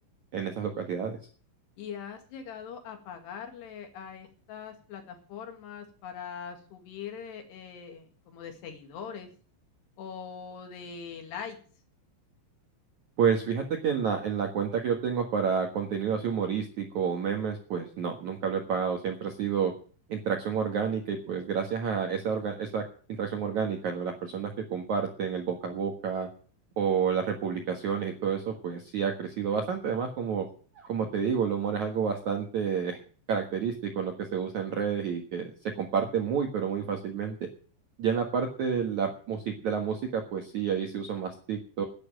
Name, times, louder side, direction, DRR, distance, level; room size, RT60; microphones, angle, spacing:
voice 1, 0.3-1.2 13.2-19.7 20.1-22.8 23.1-26.3 26.8-30.5 30.7-33.0 33.3-35.5 35.8-37.4 38.0-41.8, right 6 dB, 80° right, 3 dB, 1.7 m, -29 dB
voice 2, 1.8-9.3 10.0-11.6, left 7 dB, 60° left, 5 dB, 3.8 m, -42 dB
10.5 x 10.5 x 8.9 m, 0.42 s
omnidirectional pair, 6.0 m